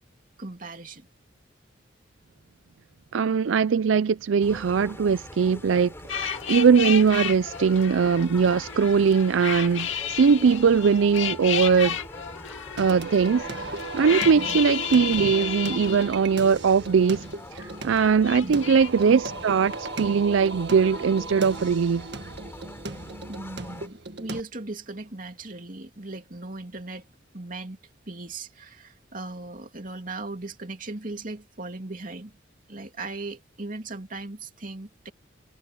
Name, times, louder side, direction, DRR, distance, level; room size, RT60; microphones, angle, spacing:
voice 1, 0.4-1.1 14.4-14.6 18.4-18.5 23.3-27.0 27.3-27.8 28.1-32.3 32.7-35.1, right 2 dB, 45° right, 2.8 m, -38 dB
voice 2, 3.1-12.0 12.8-13.5 13.9-17.3 17.5-22.1, right 6 dB, 85° right, 0.4 m, -21 dB
sound 1, 4.4-23.9, left 1 dB, 15° left, 3.6 m, -44 dB
sound 2, 6.1-17.2 17.6-18.9, left 8 dB, 85° left, 2.1 m, -33 dB
Singing, 12.8-24.4, right 2 dB, 60° right, 1.9 m, -36 dB
head